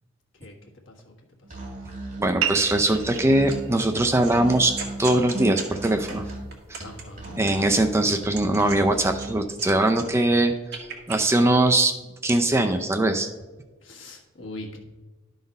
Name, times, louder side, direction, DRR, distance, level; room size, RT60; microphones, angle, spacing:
Musical instrument, 1.4-9.4, right 2 dB, 35° right, 2.5 m, -37 dB
voice 1, 2.2-6.2 6.7-6.8 7.4-11.9 12.2-13.3, right 1 dB, 15° right, 6 dB, 0.4 m, -21 dB
sound 1, 2.4-7.4, right 9 dB, 80° right, 0.5 m, -36 dB
sound 2, 2.6-3.2 3.5-7.8 8.2-9.7 9.9-11.2, right 4 dB, 55° right, 1.5 m, -38 dB
voice 2, 6.8-7.4 13.8-14.8, left 1 dB, 65° left, 0 dB, 1.5 m, -41 dB
11.5 x 3.9 x 5.3 m, 1.2 s
head